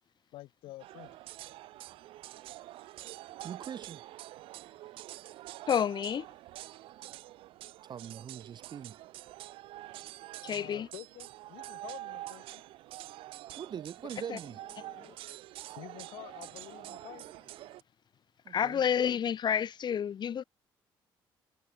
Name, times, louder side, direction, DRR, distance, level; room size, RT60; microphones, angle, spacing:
voice 1, 0.3-1.2 10.4-12.6 15.7-17.2, left 17 dB, 85° left, 6.6 m, -49 dB
sound 1, 0.8-17.8, right 16 dB, 80° right, 1.3 m, -46 dB
voice 2, 3.4-4.1 7.8-9.0 13.5-14.6 18.5-18.8, right 8 dB, 55° right, 1.8 m, -42 dB
voice 3, 5.7-6.3 10.4-10.9 14.3-14.4 14.8-15.2 18.5-20.4, left 8 dB, 55° left, 2.1 m, -30 dB
supercardioid pair, 75°, 9 cm